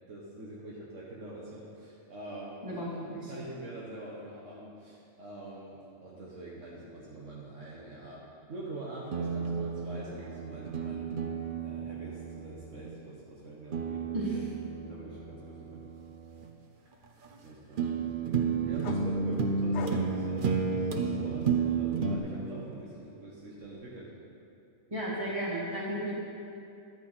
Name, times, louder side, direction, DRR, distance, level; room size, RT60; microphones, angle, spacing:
voice 1, 0.0-2.8 3.3-11.1 11.5-14.0 14.9-15.9 17.4-18.4 18.7-24.1, right 2 dB, 65° right, -5 dB, 1.5 m, -44 dB
voice 2, 2.6-3.3 14.1-14.4 24.9-26.1, right 1 dB, 25° right, -7 dB, 2.5 m, -34 dB
sound 1, 9.1-12.9 13.7-16.4 17.2-17.4 17.8-22.2, right 5 dB, 45° right, 0.8 m, -32 dB
sound 2, 18.8-21.5 21.9-23.8, left 7 dB, 65° left, 0.8 m, -47 dB
12.0 x 9.0 x 4.0 m, 2.6 s
omnidirectional pair, 1.4 m